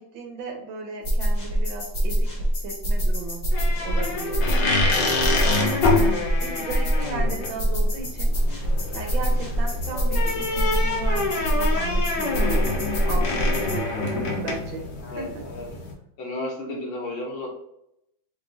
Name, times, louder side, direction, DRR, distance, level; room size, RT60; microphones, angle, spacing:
voice 1, 0.0-2.3 2.6-3.5 3.8-15.4, right 4 dB, 75° right, 2 dB, 1.6 m, -36 dB
sound 1, 1.0-13.8, right 1 dB, 40° left, 1.2 m, -24 dB
sound 2, 3.5-15.9, left 3 dB, 65° left, 1.4 m, -27 dB
voice 2, 15.0-15.7 16.2-17.5, left 2 dB, 80° left, -1 dB, 1.9 m, -33 dB
5.0 x 3.0 x 2.7 m, 0.80 s
omnidirectional pair, 2.2 m